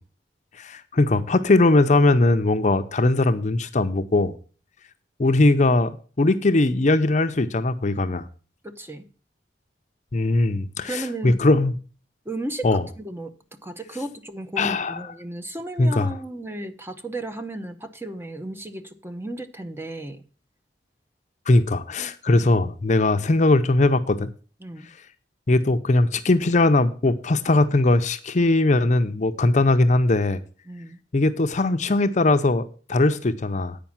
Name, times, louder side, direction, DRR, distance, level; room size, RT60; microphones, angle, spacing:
voice 1, 0.6-4.3 5.2-8.3 10.1-11.8 12.6-12.8 14.6-15.0 15.8-16.1 21.5-24.3 25.5-30.4 31.1-33.8, left 2 dB, 40° left, 0.6 m, -20 dB
voice 2, 8.6-9.0 10.9-11.4 12.3-13.3 13.6-20.2 24.6-24.9 30.7-31.0, right 1 dB, 15° right, 0.7 m, -34 dB
9.0 x 5.1 x 7.2 m
head